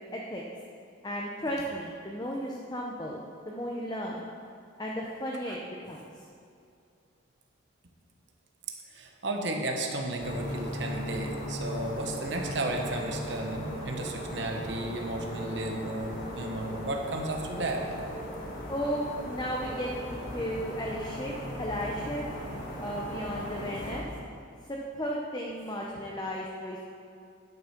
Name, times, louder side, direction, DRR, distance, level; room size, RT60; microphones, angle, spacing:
voice 1, 0.1-0.4 1.0-4.2 4.8-5.6 5.9-6.1 18.7-22.2 22.8-24.1 24.7-26.8, equal, 20° left, -2 dB, 0.7 m, -34 dB
voice 2, 8.9-17.8, right 1 dB, 55° right, 2 dB, 1.0 m, -33 dB
sound 1, 10.2-24.0, equal, 45° left, 1.9 m, -38 dB
10.5 x 6.2 x 5.8 m, 2.4 s
head